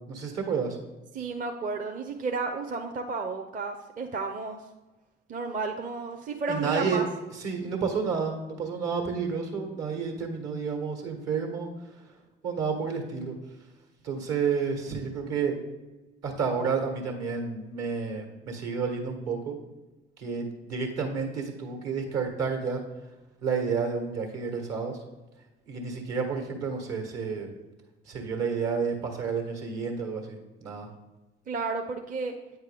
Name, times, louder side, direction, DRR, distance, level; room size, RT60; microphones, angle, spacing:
voice 1, 0.1-0.8 6.5-7.0 7.4-11.7 12.4-13.4 14.0-15.6 16.2-19.6 20.2-22.8 23.4-25.0 25.7-27.5 28.1-30.9, right 5 dB, 60° right, 3 dB, 1.4 m, -30 dB
voice 2, 1.1-4.6 5.3-7.0 31.5-32.3, right 4 dB, 30° right, 4 dB, 0.6 m, -32 dB
8.4 x 4.4 x 3.4 m, 1.1 s
hypercardioid pair, 50°, 29 cm